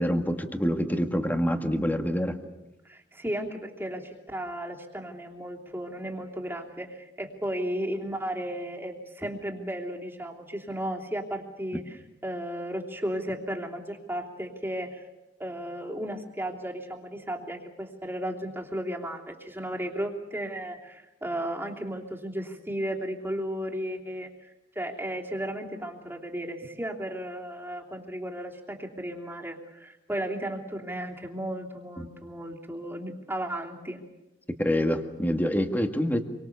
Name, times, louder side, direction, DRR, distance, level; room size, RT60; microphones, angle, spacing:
voice 1, 0.0-2.4 34.6-36.2, equal, 10° left, 6 dB, 1.9 m, -26 dB
voice 2, 2.8-15.0 15.4-24.3 24.7-34.0, right 1 dB, 15° right, 0 dB, 3.1 m, -34 dB
27.5 x 24.0 x 7.0 m, 1.0 s
head